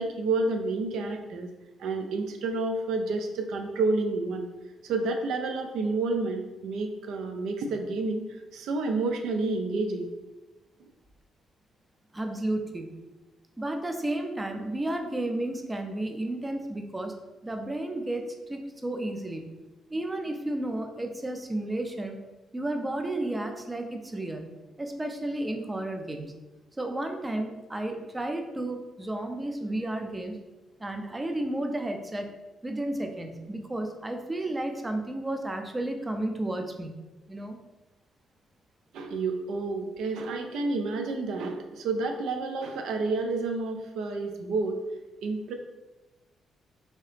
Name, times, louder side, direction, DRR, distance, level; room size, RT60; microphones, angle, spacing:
voice 1, 0.0-1.5 1.8-4.5 4.8-10.1 38.9-44.8 45.2-45.5, right 3 dB, 80° right, 4 dB, 0.4 m, -29 dB
voice 2, 12.1-13.0 13.6-17.2 17.4-19.5 19.9-22.2 22.5-24.5 24.8-26.3 26.8-30.4 30.8-32.3 32.6-36.9 37.3-37.6, right 1 dB, 15° right, 4 dB, 0.4 m, -32 dB
2.7 x 2.7 x 3.3 m, 1.1 s
cardioid pair, 90°, 0 cm